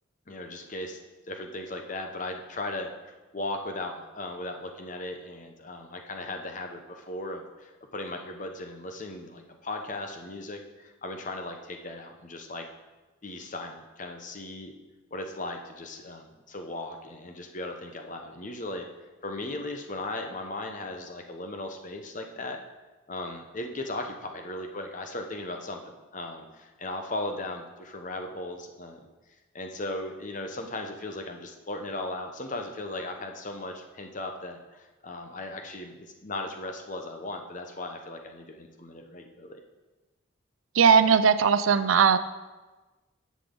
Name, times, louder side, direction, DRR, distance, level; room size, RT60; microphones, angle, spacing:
voice 1, 0.3-1.0 1.3-12.7 13.2-14.7 15.1-18.9 19.2-22.6 23.1-29.0 29.5-39.6, left 2 dB, 40° left, 4 dB, 0.9 m, -37 dB
voice 2, 40.7-42.2, right 6 dB, 75° right, 12 dB, 0.5 m, -19 dB
10.5 x 7.5 x 3.8 m, 1.2 s
head